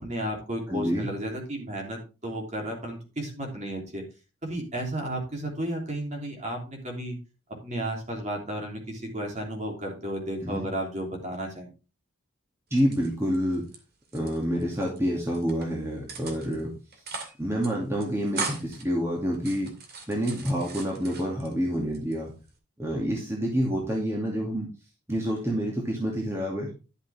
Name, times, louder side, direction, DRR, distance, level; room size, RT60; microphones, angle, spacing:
voice 1, 0.0-4.0 4.4-7.2 7.6-11.7, right 1 dB, 35° right, 1 dB, 3.2 m, -33 dB
voice 2, 0.7-1.1 10.4-10.7 12.7-13.7 14.1-16.7 17.4-19.7 20.1-22.3 22.8-24.7 25.1-26.7, equal, 15° right, -3 dB, 2.4 m, -28 dB
sound 1, 12.7-13.8 14.0-15.0 15.3-15.7 16.1-16.6 16.9-17.4 17.6-17.7 18.0-18.8 19.3-21.5 21.9-22.6, right 4 dB, 50° right, 2.4 m, -38 dB
11.5 x 7.4 x 3.5 m, 0.31 s
head